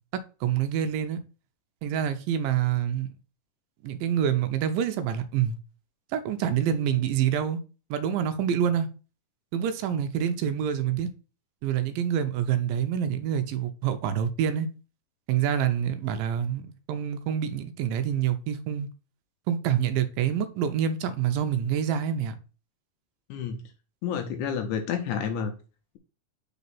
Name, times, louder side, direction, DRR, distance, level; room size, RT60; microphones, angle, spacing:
voice 1, 0.4-1.2 1.8-3.1 3.8-5.6 6.1-7.6 7.9-8.9 9.5-11.1 11.6-14.7 15.3-18.9 19.5-22.4, right 9 dB, 85° right, 2.3 m, -26 dB
voice 2, 23.3-23.6 24.0-25.5, left 7 dB, 75° left, 2.0 m, -29 dB
5.1 x 4.1 x 5.4 m
omnidirectional pair, 4.1 m